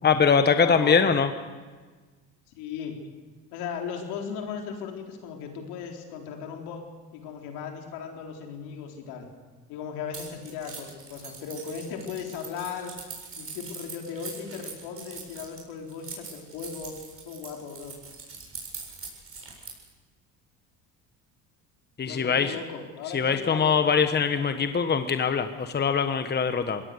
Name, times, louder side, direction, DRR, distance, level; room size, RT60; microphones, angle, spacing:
voice 1, 0.0-1.3 22.0-22.5 23.1-26.8, left 6 dB, 25° left, 9 dB, 1.3 m, -22 dB
voice 2, 0.6-1.1 2.6-3.0 3.5-6.8 7.1-9.3 9.7-12.9 13.4-16.9 17.2-18.0 22.0-24.9, left 6 dB, 75° left, 2 dB, 4.0 m, -37 dB
Keys jangling, 10.1-19.9, right 5 dB, 35° right, 7.6 m, -42 dB
22.0 x 18.0 x 6.6 m, 1.4 s
supercardioid pair, 85°, 39 cm